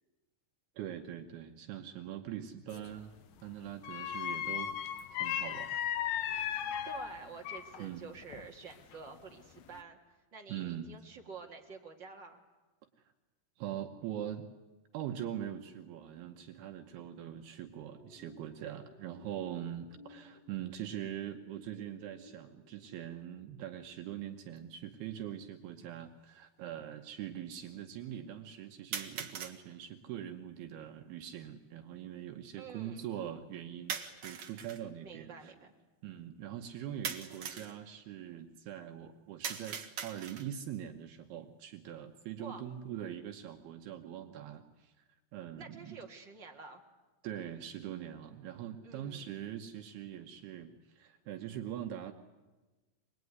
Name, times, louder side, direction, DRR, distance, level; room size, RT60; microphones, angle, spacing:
voice 1, 0.8-4.7 5.1-5.8 6.1-6.3 7.8-8.1 10.5-10.9 13.0-13.1 13.6-14.5 14.9-35.5 36.0-45.0 45.3-46.0 47.2-52.1, right 10 dB, 75° right, 4 dB, 2.9 m, -43 dB
sound 1, 2.7-3.0 3.8-7.9 8.2-9.2 9.6-9.8, left 10 dB, 70° left, 2.7 m, -36 dB
voice 2, 6.8-10.0 10.3-12.4 16.9-17.1 32.6-33.1 35.0-35.7 42.4-42.6 45.6-46.8 48.8-49.3, right 5 dB, 40° right, 1 dB, 1.9 m, -49 dB
sound 2, 17.8-23.0, left 1 dB, 50° left, 7.1 m, -58 dB
sound 3, 24.6-24.7 25.6-25.7 28.9-29.6 33.9-34.8 37.0-37.7 39.4-40.6, right 7 dB, 55° right, 1.8 m, -40 dB
25.5 x 20.5 x 9.5 m, 1.2 s
omnidirectional pair, 4.7 m